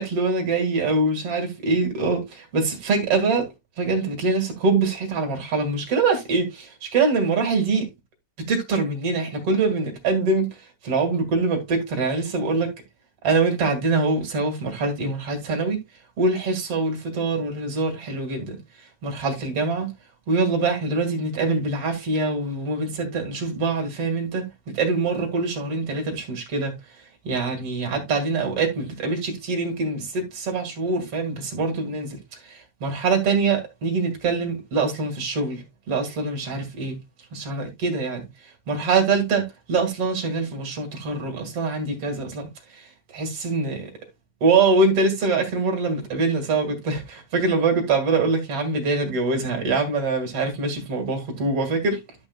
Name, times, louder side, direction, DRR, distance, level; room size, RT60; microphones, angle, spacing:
voice 1, 0.0-3.5 3.8-7.9 8.5-12.7 13.2-15.8 16.2-18.6 19.0-19.9 20.3-24.5 24.7-26.7 27.2-37.0 37.3-38.2 38.7-43.9 44.4-52.0, right 3 dB, 45° right, 2.3 m, -24 dB
12.5 x 6.3 x 2.3 m
omnidirectional pair, 5.3 m